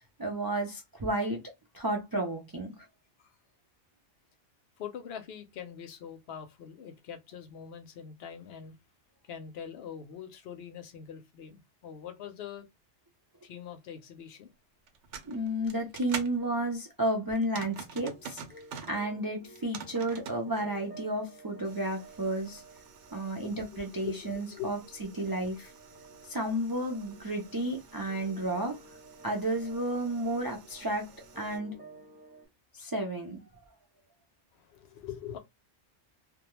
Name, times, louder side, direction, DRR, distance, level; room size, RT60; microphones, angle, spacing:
voice 1, 0.0-2.7 15.3-18.4 18.9-22.6 23.1-24.8 25.1-25.7 26.2-28.8 29.2-31.8 32.7-33.4, right 1 dB, 35° right, 0.3 m, -32 dB
voice 2, 4.8-8.8 9.2-12.7 13.4-14.5 23.4-24.2 24.4-24.8 34.5-35.4, left 9 dB, 65° left, 0.8 m, -43 dB
sound 1, 14.9-16.4 17.3-19.0 19.4-20.4 21.6-31.6, right 7 dB, 75° right, 0.9 m, -47 dB
sound 2, 18.0-32.5, right 2 dB, 10° right, 0.8 m, -53 dB
2.2 x 2.2 x 3.0 m
omnidirectional pair, 1.2 m